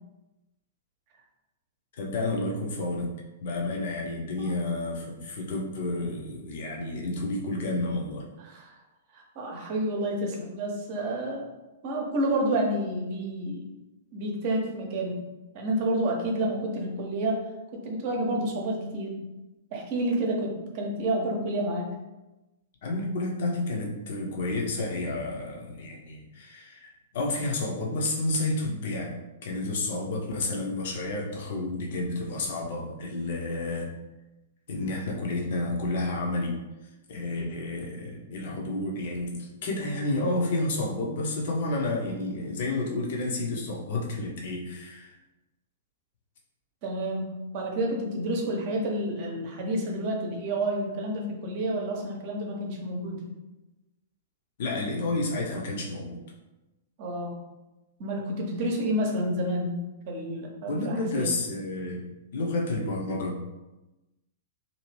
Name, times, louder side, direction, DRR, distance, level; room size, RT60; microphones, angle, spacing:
voice 1, 2.0-3.1 3.4-8.2 22.8-29.1 29.4-33.9 34.7-36.6 37.1-45.1 54.6-56.2 60.7-62.0 62.3-63.5, left 2 dB, 50° left, -1 dB, 0.7 m, -30 dB
voice 2, 8.4-8.8 9.1-11.5 11.8-13.6 14.1-15.2 15.5-17.5 17.7-19.2 19.7-21.9 46.8-53.2 57.0-57.4 58.0-61.3, right 1 dB, 40° right, 1 dB, 0.8 m, -29 dB
2.8 x 2.7 x 3.1 m, 1.0 s
figure-of-eight pair, 105°, 0 cm